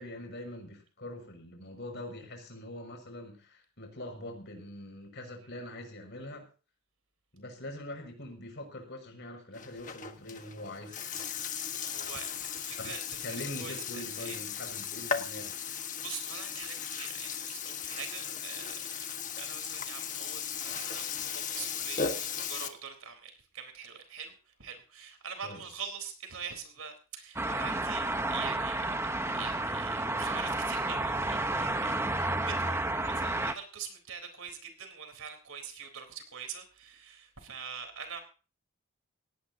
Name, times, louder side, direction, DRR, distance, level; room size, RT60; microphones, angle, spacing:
voice 1, 0.0-6.5 7.3-11.2 12.8-12.9 13.2-15.5 25.4-25.7, left 1 dB, 50° left, 4 dB, 6.1 m, -43 dB
Burping eructation, 9.5-22.7, left 7 dB, 35° left, 1.4 m, -37 dB
voice 2, 11.8-14.4 15.7-18.8 19.4-24.3 24.6-28.1 28.3-28.8 29.2-38.2, right 6 dB, 75° right, 6 dB, 3.9 m, -44 dB
sound 1, 27.4-33.5, right 2 dB, 10° right, 0.9 m, -31 dB
18.5 x 17.5 x 2.8 m, 0.35 s
head